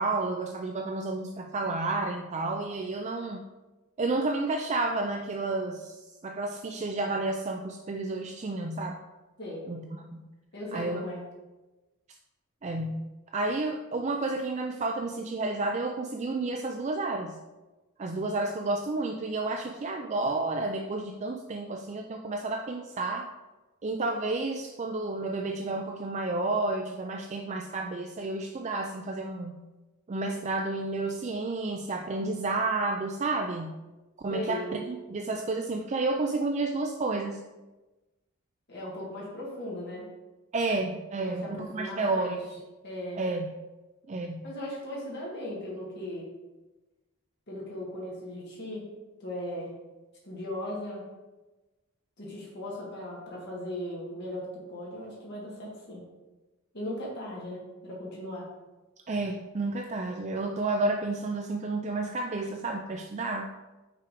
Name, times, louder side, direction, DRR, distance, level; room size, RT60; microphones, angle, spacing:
voice 1, 0.0-3.4 4.0-9.0 9.7-9.8 10.1-10.3 10.7-11.0 12.6-17.4 18.0-23.3 23.8-29.6 30.1-33.7 34.2-37.4 40.5-42.5 43.1-43.5 44.1-44.5 59.1-63.5, right 2 dB, 30° right, 3 dB, 0.4 m, -31 dB
voice 2, 10.5-11.2 34.3-34.7 38.7-40.1 41.2-42.4 42.8-43.2 44.4-46.3 47.5-48.9 49.2-49.7 50.2-51.0 52.2-56.0 56.7-58.5, left 1 dB, 50° left, -5 dB, 1.8 m, -37 dB
5.7 x 4.8 x 5.1 m, 1.1 s
head